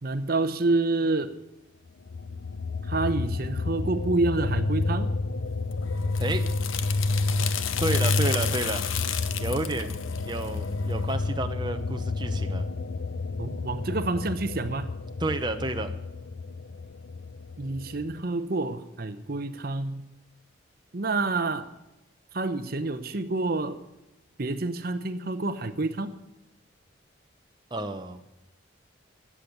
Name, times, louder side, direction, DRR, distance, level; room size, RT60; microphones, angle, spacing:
voice 1, 0.0-1.4 2.8-5.1 13.4-14.9 17.6-20.0 20.9-21.7 22.3-23.8 24.4-26.1, right 2 dB, 50° right, 10 dB, 0.8 m, -28 dB
sound 1, 2.1-18.2, left 3 dB, 65° left, 0.6 m, -30 dB
sound 2, 5.7-11.2, left 8 dB, 90° left, 1.0 m, -33 dB
voice 2, 7.8-8.9 9.4-9.9 10.2-12.7 15.2-15.9 27.7-28.2, right 2 dB, 20° right, 6 dB, 0.8 m, -30 dB
13.5 x 8.6 x 9.2 m, 0.95 s
head